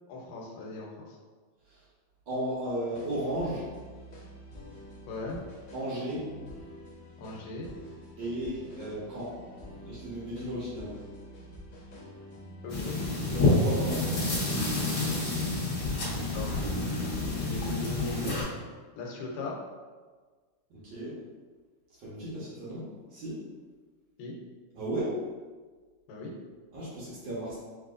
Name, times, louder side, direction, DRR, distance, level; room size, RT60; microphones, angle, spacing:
voice 1, 0.1-1.2 5.1-5.4 7.2-7.7 12.6-13.0 16.3-16.7 17.4-18.2 19.0-19.6 24.2-24.4 26.1-26.4, left 2 dB, 85° left, -1 dB, 2.4 m, -39 dB
voice 2, 2.3-3.6 5.7-6.2 8.2-9.3 9.8-10.9 13.3-14.3 20.7-21.1 22.0-23.4 24.7-25.2 26.7-27.6, right 1 dB, 70° right, -9 dB, 1.1 m, -34 dB
sound 1, 2.9-18.1, equal, 65° left, 1.3 m, -48 dB
sound 2, 12.7-18.4, left 2 dB, 45° left, 1.7 m, -28 dB
6.1 x 2.8 x 2.5 m, 1.4 s
omnidirectional pair, 3.7 m